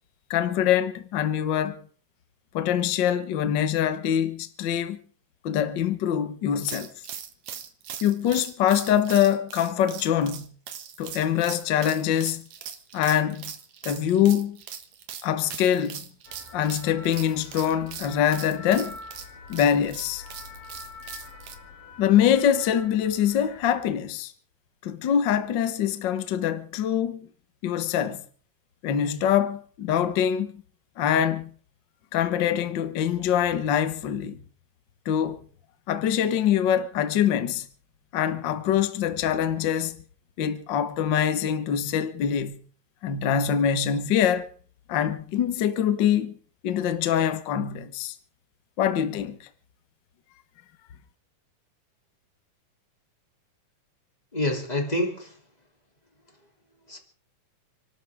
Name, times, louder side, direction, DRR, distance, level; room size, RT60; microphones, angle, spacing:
voice 1, 0.3-1.8 2.5-5.0 5.4-6.9 8.0-10.5 11.0-12.4 12.9-13.5 13.8-14.6 15.2-16.0 16.5-19.0 19.5-20.2 22.0-24.3 24.8-27.3 27.6-28.2 28.8-30.5 31.0-31.5 32.1-34.4 35.0-35.4 35.9-37.7 38.1-40.0 40.4-42.6 43.0-44.5 44.9-46.4 46.6-48.1 48.8-49.5, left 9 dB, 70° left, 1.0 m, -24 dB
sound 1, 6.6-21.5, right 9 dB, 60° right, 2.4 m, -40 dB
sound 2, 16.3-23.9, left 4 dB, 90° left, 5.6 m, -45 dB
voice 2, 54.3-55.4 56.9-57.0, left 1 dB, 10° left, 2.7 m, -27 dB
30.0 x 12.5 x 3.6 m
omnidirectional pair, 3.9 m